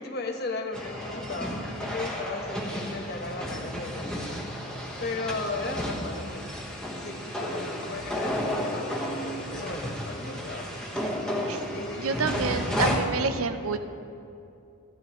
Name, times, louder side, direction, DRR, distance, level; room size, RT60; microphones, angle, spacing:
voice 1, 0.0-4.3 5.0-6.6 7.0-10.7 11.7-12.4 12.9-13.0, left 3 dB, 45° left, 3 dB, 1.1 m, -36 dB
sound 1, 0.7-13.0, equal, 5° left, 1.2 m, -32 dB
voice 2, 12.0-13.8, right 4 dB, 80° right, 9 dB, 0.6 m, -28 dB
15.5 x 12.0 x 3.1 m, 2.6 s
head